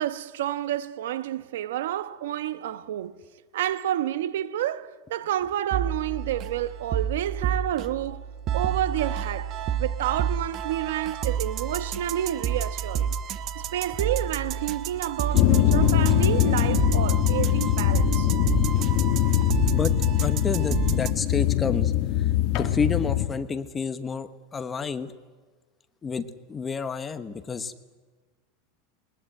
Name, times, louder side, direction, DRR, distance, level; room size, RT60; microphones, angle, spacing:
voice 1, 0.0-3.2 3.5-8.3 8.5-13.1 13.5-18.3, right 12 dB, 80° right, 1.1 m, -29 dB
sound 1, 5.7-21.1, right 8 dB, 35° right, 1.0 m, -30 dB
sound 2, 15.3-23.3, left 12 dB, 45° left, 1.4 m, -22 dB
voice 2, 20.2-25.1 26.0-27.7, left 5 dB, 15° left, 1.1 m, -30 dB
21.5 x 21.0 x 9.1 m
supercardioid pair, 155°, 0 cm